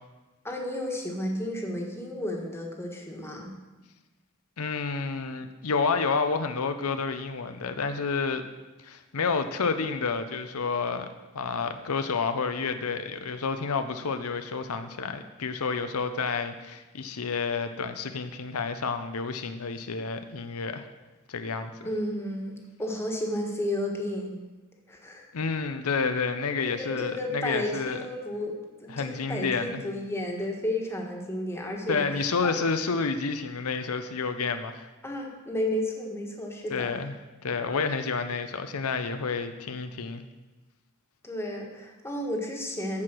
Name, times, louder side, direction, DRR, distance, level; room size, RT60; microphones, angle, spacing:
voice 1, 0.4-3.5 21.8-24.3 24.9-25.3 26.6-32.6 35.0-36.9 41.2-43.0, left 1 dB, 10° left, 1 dB, 1.5 m, -32 dB
voice 2, 4.6-8.4 8.8-11.1 11.3-20.9 21.3-21.7 25.3-28.0 28.9-29.8 31.9-34.9 36.7-37.1 37.4-40.2, left 4 dB, 90° left, 8 dB, 0.7 m, -29 dB
14.5 x 4.8 x 6.1 m, 1.1 s
head